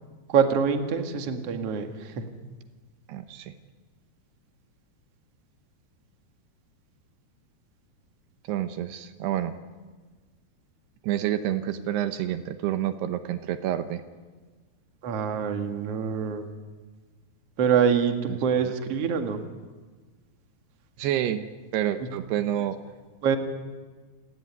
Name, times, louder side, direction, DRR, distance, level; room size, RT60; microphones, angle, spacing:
voice 1, 0.3-2.2 15.0-16.5 17.6-19.4 22.1-22.2 23.2-23.4, right 7 dB, 45° right, 5 dB, 2.3 m, -25 dB
voice 2, 3.1-3.5 8.5-9.6 11.0-14.0 18.3-18.4 21.0-21.4 21.7-22.8, right 11 dB, 80° right, 9 dB, 3.0 m, -28 dB
28.5 x 18.0 x 9.6 m, 1.4 s
omnidirectional pair, 4.8 m